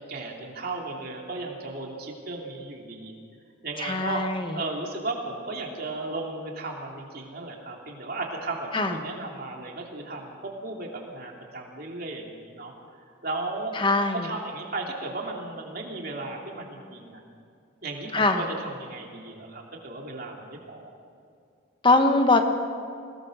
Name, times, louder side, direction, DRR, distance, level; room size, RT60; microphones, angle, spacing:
voice 1, 0.0-3.1 3.6-4.2 4.5-12.7 13.2-13.7 14.2-17.2 17.8-20.9, right 2 dB, 50° right, 0 dB, 3.1 m, -35 dB
voice 2, 3.8-4.6 8.7-8.9 13.8-14.3 18.1-18.4 21.8-22.4, left 2 dB, 25° left, 6 dB, 1.3 m, -22 dB
23.0 x 19.0 x 6.4 m, 2.4 s
head